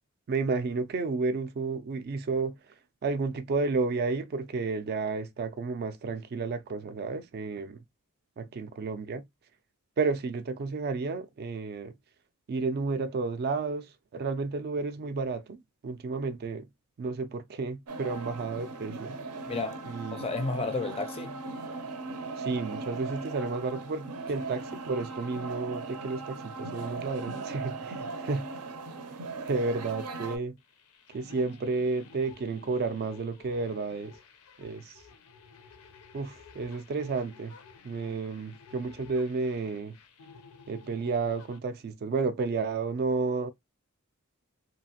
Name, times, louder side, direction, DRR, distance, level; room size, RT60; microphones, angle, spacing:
voice 1, 0.3-2.7 3.0-7.8 8.4-9.3 10.0-11.9 12.5-16.7 17.0-19.2 19.9-20.2 22.4-28.5 29.4-30.6 31.1-34.1 34.6-35.0 36.1-37.6 37.8-40.0 40.7-43.5, right 4 dB, 45° right, 0.3 m, -32 dB
sound 1, 17.9-30.4, right 3 dB, 90° right, 0.6 m, -38 dB
voice 2, 19.5-21.4, left 3 dB, 25° left, 0.4 m, -33 dB
sound 2, 30.6-41.6, left 5 dB, 90° left, 0.6 m, -53 dB
2.8 x 2.4 x 2.8 m
head